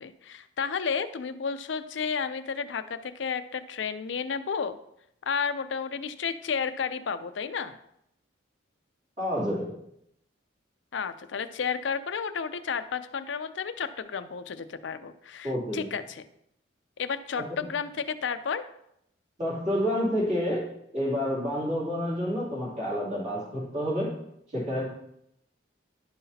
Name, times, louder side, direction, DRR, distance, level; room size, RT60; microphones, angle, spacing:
voice 1, 0.0-4.8 5.3-7.8 10.9-16.2 17.0-18.7, left 6 dB, 80° left, 11 dB, 0.5 m, -32 dB
voice 2, 9.2-9.7 15.4-15.9 17.4-17.5 19.4-20.7 20.9-24.1 24.5-24.8, equal, 40° right, -6 dB, 2.8 m, -29 dB
11.0 x 5.7 x 2.8 m, 0.77 s
head